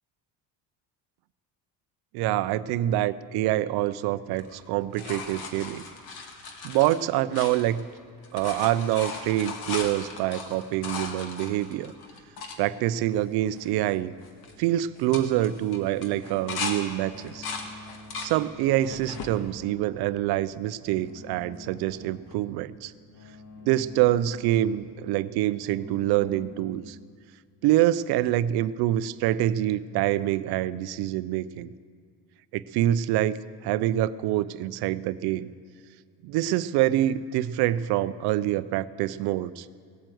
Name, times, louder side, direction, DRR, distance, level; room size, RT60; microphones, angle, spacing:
voice 1, 2.1-5.8 6.6-7.8 8.3-11.9 12.6-14.1 14.6-17.5 18.2-22.9 23.6-27.0 27.6-31.7 32.5-33.4 33.6-35.5 36.2-39.7, right 13 dB, 65° right, 16 dB, 0.5 m, -26 dB
sound 1, 4.3-8.0 8.2-12.6 13.2-13.3 13.5-13.9 14.2-14.5 14.9-16.8 17.1-18.3 18.8-19.3 20.0-20.7 22.3-22.4, left 4 dB, 60° left, 1.9 m, -37 dB
sound 2, 16.3-26.5, left 2 dB, 80° left, 2.9 m, -48 dB
18.5 x 9.0 x 7.8 m, 2.1 s
cardioid pair, 160°, 41 cm